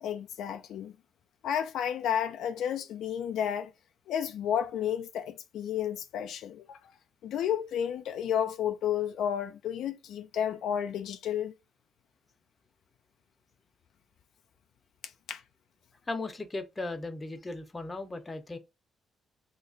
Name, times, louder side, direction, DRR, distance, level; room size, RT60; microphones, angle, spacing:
voice 1, 0.0-0.9 1.4-3.7 4.1-6.8 7.2-11.5 15.3-15.4, left 9 dB, 80° left, 0.3 m, -31 dB
voice 2, 16.1-18.6, left 2 dB, 25° left, 0.7 m, -37 dB
2.9 x 2.4 x 3.8 m
cardioid pair, 90°, 0 cm